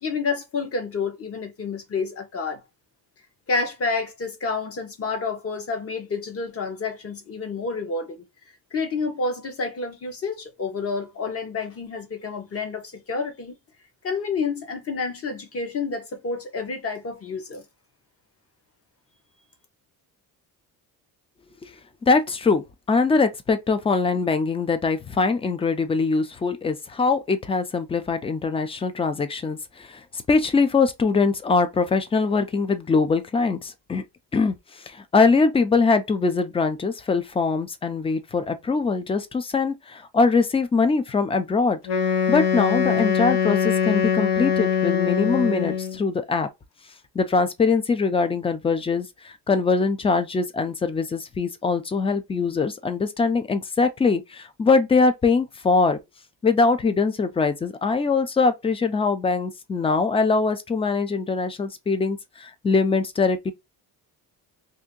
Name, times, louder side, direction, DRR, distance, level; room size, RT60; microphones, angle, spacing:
voice 1, 0.0-2.6 3.5-8.2 8.7-13.5 14.0-17.6, left 4 dB, 35° left, 0.9 m, -29 dB
voice 2, 22.0-34.0 34.3-41.8 42.3-46.5 47.1-56.0 56.4-63.5, left 4 dB, 15° left, 0.3 m, -22 dB
Wind instrument woodwind instrument, 41.8-46.0, left 7 dB, 90° left, 0.8 m, -22 dB
2.7 x 2.6 x 3.6 m
cardioid pair, 145°, 39 cm